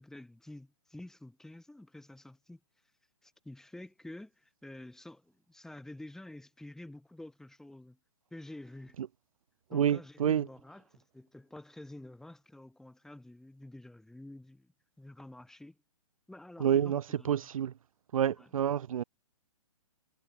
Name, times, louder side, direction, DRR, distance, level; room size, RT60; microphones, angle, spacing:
voice 1, 0.0-2.6 3.2-8.0 8.3-9.0 9.7-14.7 15.0-15.8 16.3-17.5 18.3-18.5, left 1 dB, ahead, 5.7 m, -49 dB
voice 2, 9.7-10.5 16.6-17.7 18.1-19.0, right 9 dB, 65° right, 1.1 m, -28 dB
hypercardioid pair, 150°, 19 cm